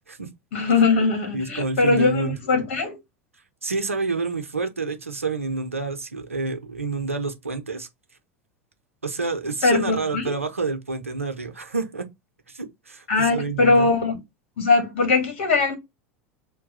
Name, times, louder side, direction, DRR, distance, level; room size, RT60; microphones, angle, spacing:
voice 1, 0.5-3.0 9.6-10.2 13.1-14.2 14.6-15.8, left 4 dB, 65° left, 1.4 m, -21 dB
voice 2, 1.3-2.4 3.6-7.9 9.0-12.1 12.5-13.9, right 3 dB, 90° right, 0.6 m, -28 dB
3.2 x 2.2 x 4.0 m
figure-of-eight pair, 80°, 7 cm